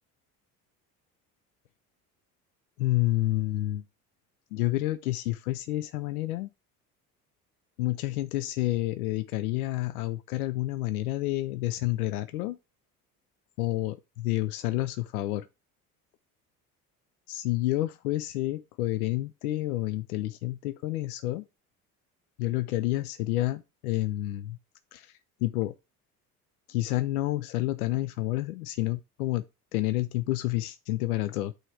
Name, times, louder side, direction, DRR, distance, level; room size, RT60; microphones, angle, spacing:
voice 1, 2.8-3.8 4.5-6.5 7.8-12.6 13.6-15.5 17.3-21.4 22.4-24.6 24.9-25.1 25.4-25.7 26.7-29.4 29.7-31.5, left 16 dB, 80° left, 0.6 m, -29 dB
9.1 x 3.3 x 4.8 m
hypercardioid pair, 60°, 44 cm